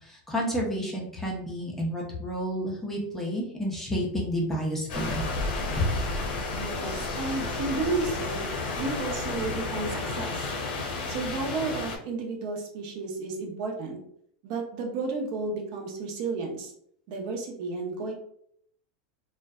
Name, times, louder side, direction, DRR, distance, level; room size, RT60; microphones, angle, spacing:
voice 1, 0.0-5.2 5.8-5.9, equal, 5° left, -3 dB, 0.5 m, -30 dB
sound 1, 4.9-12.0, left 3 dB, 80° left, 0.6 m, -31 dB
voice 2, 6.6-8.5 8.8-10.5 11.1-14.0 14.4-16.7 17.1-18.1, right 3 dB, 55° right, 1 dB, 0.6 m, -32 dB
2.5 x 2.2 x 2.3 m, 0.67 s
supercardioid pair, 150°, 5 cm